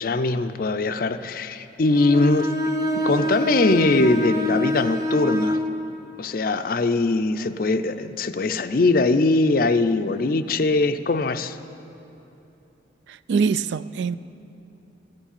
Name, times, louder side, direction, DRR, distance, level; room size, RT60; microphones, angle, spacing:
voice 1, 0.0-2.5 3.0-5.6 6.2-11.6, left 3 dB, 50° left, 11 dB, 0.4 m, -21 dB
Bowed string instrument, 1.9-5.7, equal, 15° right, 0.7 m, -25 dB
voice 2, 13.3-14.2, right 5 dB, 70° right, 16 dB, 0.3 m, -23 dB
15.5 x 7.2 x 8.8 m, 2.9 s
head